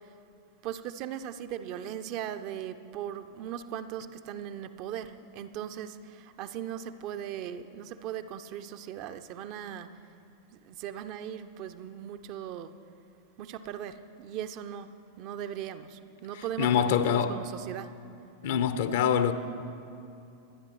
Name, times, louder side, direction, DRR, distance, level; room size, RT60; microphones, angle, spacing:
voice 1, 0.6-9.9 10.6-12.7 13.4-14.9 15.2-17.9, right 10 dB, 40° right, 0.5 m, -38 dB
voice 2, 16.3-17.4 18.4-19.3, left 8 dB, 55° left, 0.6 m, -25 dB
24.0 x 10.5 x 3.0 m
figure-of-eight pair, 90°, 0 cm